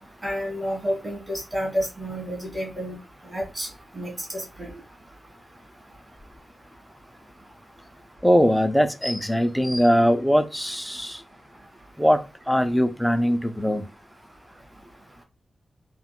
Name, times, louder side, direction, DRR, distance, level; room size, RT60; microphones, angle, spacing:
voice 1, 0.2-3.0 3.2-3.7 3.9-4.7, equal, 20° right, 1.3 m, -30 dB
voice 2, 8.2-11.2 12.0-12.2 12.5-13.8, equal, ahead, 0.3 m, -21 dB
3.6 x 2.2 x 2.2 m
wide cardioid pair, 140°, 0 cm